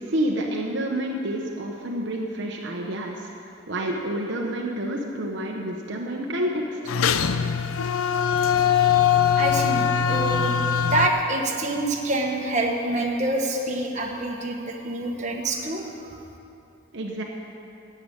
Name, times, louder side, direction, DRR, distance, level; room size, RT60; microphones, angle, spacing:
voice 1, 0.1-6.8 16.9-17.2, right 1 dB, 55° right, 0 dB, 1.0 m, -29 dB
sound 1, 6.9-11.1, left 8 dB, 75° left, 0.5 m, -21 dB
voice 2, 9.4-16.0, right 2 dB, 35° right, 0 dB, 1.3 m, -26 dB
11.5 x 7.9 x 8.6 m, 2.7 s
head